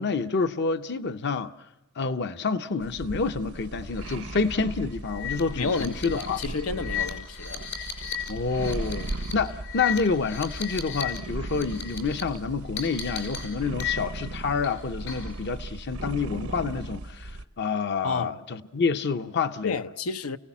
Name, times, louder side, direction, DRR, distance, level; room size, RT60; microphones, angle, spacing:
voice 1, 0.0-1.5 2.0-6.4 8.3-19.8, left 4 dB, 55° left, 0.7 m, -28 dB
sound 1, 2.8-17.4, right 2 dB, 80° right, 0.9 m, -37 dB
sound 2, 3.9-4.1 4.5-4.6 5.1-11.2 11.4-12.2 12.8-14.3 14.6-15.4, left 8 dB, 70° left, 5.8 m, -35 dB
voice 2, 5.6-7.7 18.0-18.3 19.6-20.4, left 4 dB, 90° left, 0.8 m, -30 dB
29.5 x 17.0 x 7.2 m
head